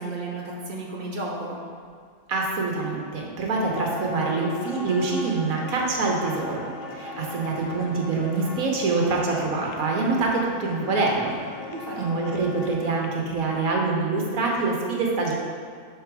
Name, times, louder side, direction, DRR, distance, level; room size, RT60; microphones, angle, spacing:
voice 1, 0.0-1.7 11.7-12.1, right 2 dB, 35° right, -4 dB, 1.2 m, -33 dB
voice 2, 2.3-11.4 12.0-15.3, right 3 dB, 90° right, -1 dB, 1.4 m, -25 dB
sound 1, 3.7-13.1, left 2 dB, 60° left, 0.7 m, -38 dB
5.8 x 4.2 x 5.9 m, 2.1 s
omnidirectional pair, 1.4 m